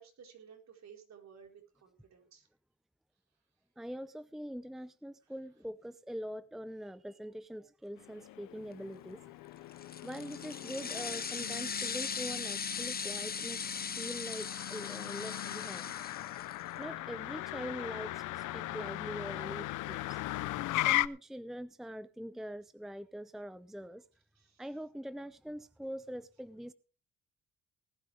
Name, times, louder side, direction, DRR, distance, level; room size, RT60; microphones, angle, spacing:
voice 1, 0.0-2.5 5.2-5.3 24.3-24.6, right 7 dB, 60° right, 4.5 m, -56 dB
voice 2, 3.8-9.2 10.0-13.6 14.0-15.9 16.8-20.2 20.7-24.0 24.6-26.7, equal, ahead, 0.7 m, -43 dB
Motor vehicle (road), 8.0-21.1, left 16 dB, 85° left, 0.7 m, -38 dB
sound 1, 9.7-16.7, left 6 dB, 30° left, 1.0 m, -39 dB
19.0 x 11.0 x 3.4 m
cardioid pair, 90°, 30 cm